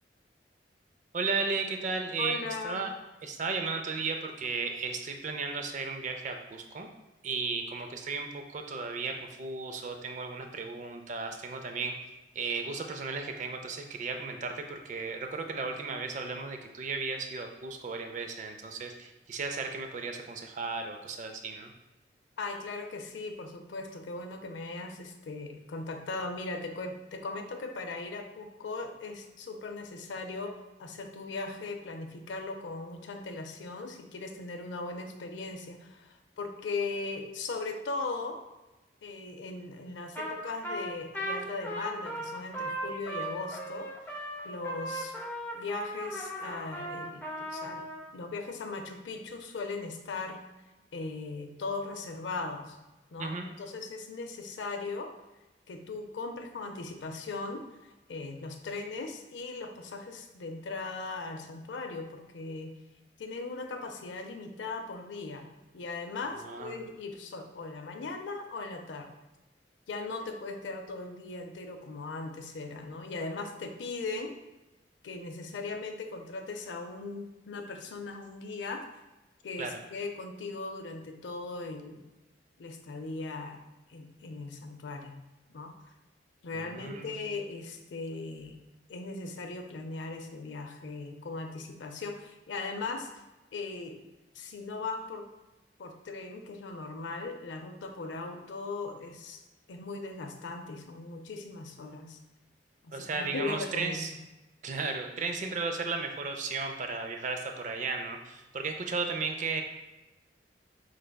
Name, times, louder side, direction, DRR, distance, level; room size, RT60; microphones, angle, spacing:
voice 1, 1.1-2.9 3.2-6.9 7.2-11.9 12.3-21.7 53.2-53.5 66.4-66.8 79.6-79.8 86.5-87.3 102.9-104.1 104.6-109.6, right 4 dB, 45° right, 5 dB, 0.4 m, -35 dB
voice 2, 2.2-2.8 22.4-30.5 30.8-38.4 39.0-45.1 45.5-47.8 48.1-50.4 50.9-52.8 53.1-55.1 55.7-62.7 63.2-65.5 65.7-69.1 69.9-74.4 75.0-78.8 79.4-82.0 82.6-83.6 83.9-85.2 85.5-85.7 86.4-88.6 88.9-93.1 93.5-94.0 94.3-95.3 95.8-102.2 102.8-104.1, left 3 dB, 85° left, 5 dB, 0.5 m, -38 dB
Trumpet, 40.2-40.4 40.6-48.0, right 1 dB, 10° left, 0.5 m, -37 dB
4.7 x 3.2 x 2.2 m, 1.0 s
head